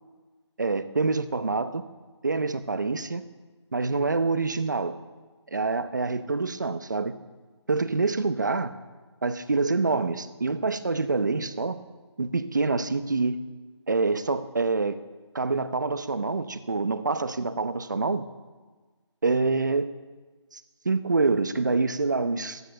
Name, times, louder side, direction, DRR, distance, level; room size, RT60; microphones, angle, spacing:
voice 1, 0.6-1.8 2.2-3.2 3.7-5.0 5.5-7.1 7.7-8.7 9.2-11.8 12.2-13.4 13.9-15.0 15.3-18.2 19.2-19.9 20.5-22.6, right 3 dB, 40° right, 13 dB, 0.7 m, -26 dB
14.5 x 11.0 x 6.5 m, 1.4 s
figure-of-eight pair, 175°, 15 cm